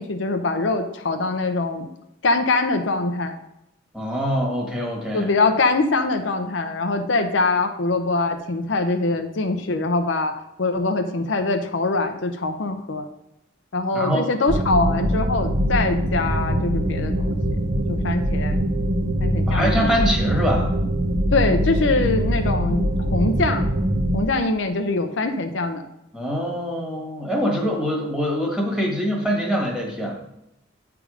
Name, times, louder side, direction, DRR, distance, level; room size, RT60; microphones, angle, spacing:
voice 1, 0.0-1.9 2.2-3.4 5.1-13.1 13.7-17.4 17.9-18.6 19.2-19.9 21.3-23.7 24.1-25.8, left 3 dB, 70° left, 6 dB, 0.6 m, -23 dB
voice 2, 3.9-5.3 13.9-14.3 19.5-20.7 26.1-30.2, equal, 5° right, -2 dB, 1.5 m, -24 dB
sound 1, 14.5-24.2, equal, 45° right, 0.6 m, -22 dB
8.6 x 3.6 x 4.9 m, 0.84 s
head